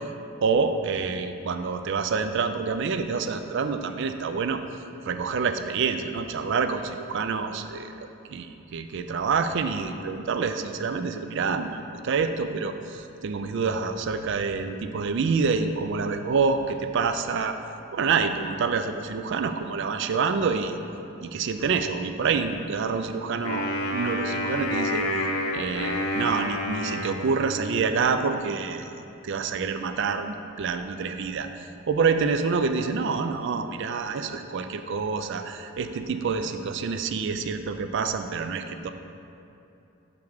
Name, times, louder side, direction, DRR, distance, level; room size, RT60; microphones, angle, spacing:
voice 1, 0.4-4.6 5.0-8.5 8.7-17.6 17.9-20.7 21.2-38.9, right 5 dB, 55° right, 8 dB, 0.3 m, -27 dB
Wind instrument woodwind instrument, 23.4-27.9, left 1 dB, 90° left, 0.7 m, -29 dB
6.7 x 3.5 x 6.2 m, 2.8 s
head